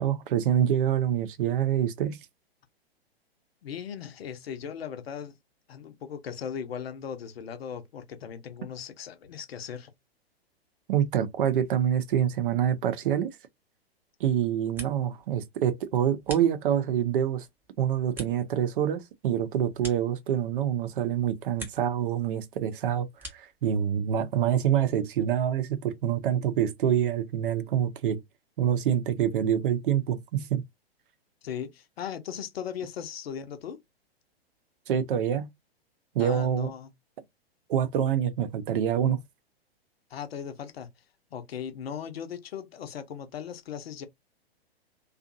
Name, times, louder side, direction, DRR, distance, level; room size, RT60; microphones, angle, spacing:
voice 1, 0.0-2.2 10.9-13.4 14.2-17.5 17.8-28.2 28.6-30.6 34.9-35.5 36.1-36.7 37.7-39.2, right 9 dB, 55° right, 0.6 m, -26 dB
voice 2, 3.6-5.4 5.7-9.9 31.4-33.8 36.2-36.9 40.1-40.9 41.3-44.1, left 8 dB, 70° left, 0.8 m, -38 dB
sound 1, 14.4-15.3 15.6-17.0 17.4-20.7 21.1-22.0 22.3-23.6, right 1 dB, 5° right, 0.6 m, -46 dB
2.6 x 2.4 x 2.5 m
hypercardioid pair, 120°, 31 cm